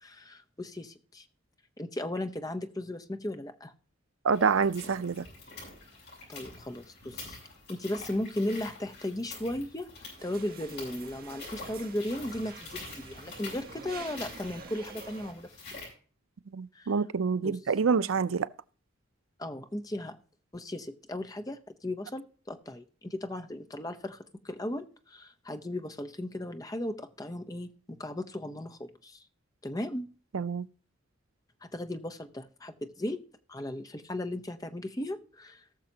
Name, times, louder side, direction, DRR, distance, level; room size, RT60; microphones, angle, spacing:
voice 1, 0.0-1.3 1.8-3.7 6.3-7.4 7.7-9.9 10.2-15.5 16.7-16.9 17.4-17.6 19.4-20.2 20.5-29.3 29.6-30.1 31.6-33.2 33.5-35.6, left 1 dB, 20° left, 0.8 m, -36 dB
voice 2, 4.2-5.2 16.5-18.5 30.3-30.6, right 5 dB, 85° right, 0.5 m, -27 dB
sound 1, 4.3-15.9, left 3 dB, 55° left, 6.5 m, -46 dB
sound 2, 10.2-15.3, right 4 dB, 45° right, 1.3 m, -48 dB
19.0 x 6.6 x 2.8 m
head